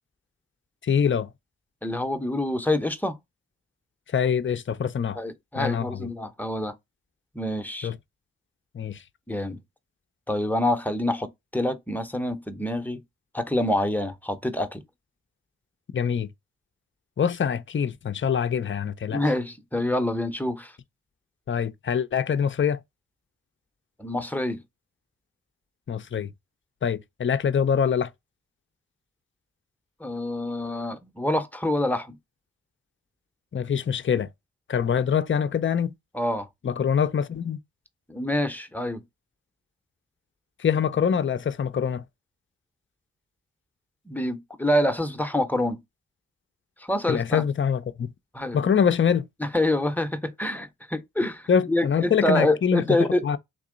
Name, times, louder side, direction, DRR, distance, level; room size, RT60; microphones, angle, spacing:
voice 1, 0.8-1.3 4.1-5.2 5.6-6.1 7.8-8.0 8.7-9.0 15.9-16.3 17.2-19.2 21.5-22.8 25.9-26.3 26.8-28.1 33.5-34.3 34.7-35.9 36.6-37.6 40.6-42.0 47.1-48.1 48.5-49.3 51.5-53.4, left 7 dB, 35° left, 0.5 m, -24 dB
voice 2, 1.8-3.2 5.2-6.7 7.3-7.9 9.3-9.6 10.3-13.0 13.3-14.8 19.1-20.7 24.0-24.6 30.0-32.2 36.1-36.5 38.1-39.0 44.1-45.8 46.9-47.4 48.3-48.6 49.4-53.2, left 1 dB, 5° left, 0.8 m, -26 dB
3.8 x 2.9 x 3.8 m
supercardioid pair, 40°, 37 cm